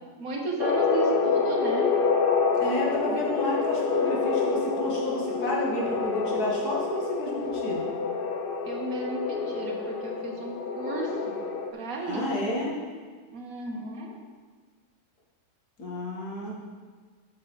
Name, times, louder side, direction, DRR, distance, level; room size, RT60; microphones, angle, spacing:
voice 1, 0.2-1.9 8.6-11.4 11.7-12.2 13.3-14.2, right 3 dB, 60° right, 0 dB, 1.8 m, -34 dB
sound 1, 0.6-11.7, left 5 dB, 55° left, 0.6 m, -27 dB
voice 2, 2.6-7.9 12.1-12.7 15.8-16.6, left 1 dB, 70° left, -4 dB, 2.4 m, -31 dB
8.1 x 6.1 x 6.2 m, 1.5 s
omnidirectional pair, 1.7 m